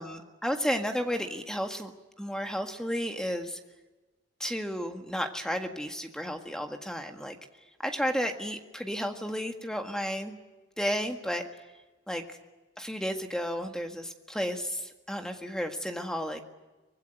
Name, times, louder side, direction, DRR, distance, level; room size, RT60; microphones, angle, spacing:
voice 1, 0.0-1.9 2.2-3.6 4.4-7.4 7.8-10.3 10.8-11.4 12.1-12.4 12.8-16.4, equal, 5° left, 4 dB, 1.7 m, -32 dB
24.0 x 20.5 x 9.1 m, 1.2 s
head